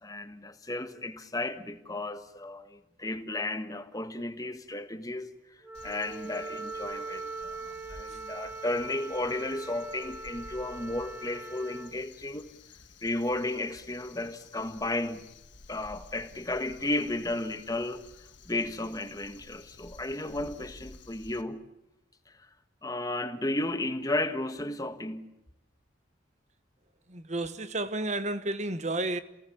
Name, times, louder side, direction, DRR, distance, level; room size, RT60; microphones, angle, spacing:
voice 1, 0.0-5.3 5.8-12.5 13.0-15.3 15.7-18.0 18.4-21.6 22.8-25.3, left 2 dB, 20° left, 1.5 m, -33 dB
Wind instrument woodwind instrument, 5.6-11.9, right 3 dB, 10° right, 1.4 m, -41 dB
Crow, 5.7-21.4, left 4 dB, 75° left, 1.5 m, -53 dB
voice 2, 27.1-29.2, right 2 dB, 40° right, 1.3 m, -32 dB
28.5 x 18.0 x 8.6 m
head